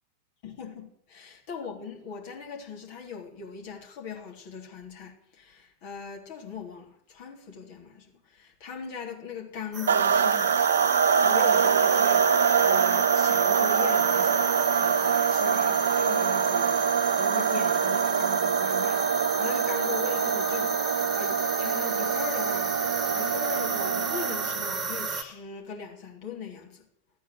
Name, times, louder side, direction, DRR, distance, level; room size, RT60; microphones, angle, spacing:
voice 1, 0.4-22.7 23.1-26.8, left 6 dB, 50° left, 0 dB, 3.4 m, -40 dB
sound 1, 9.7-25.2, right 3 dB, 20° right, 1.8 m, -33 dB
sound 2, 9.9-24.6, right 7 dB, 65° right, 0.5 m, -24 dB
14.0 x 9.2 x 7.8 m, 0.63 s
figure-of-eight pair, 90°, 0 cm